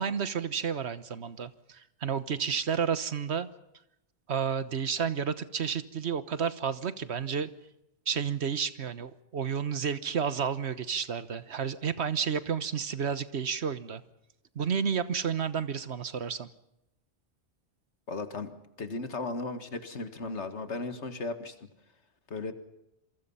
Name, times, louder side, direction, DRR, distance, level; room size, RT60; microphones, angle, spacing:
voice 1, 0.0-3.5 4.3-7.5 8.1-14.0 14.5-16.5, right 7 dB, 75° right, 13 dB, 1.4 m, -31 dB
voice 2, 18.1-18.5 18.8-21.5 22.3-22.5, left 3 dB, 85° left, 9 dB, 2.2 m, -35 dB
27.5 x 23.5 x 5.6 m, 0.87 s
omnidirectional pair, 1.1 m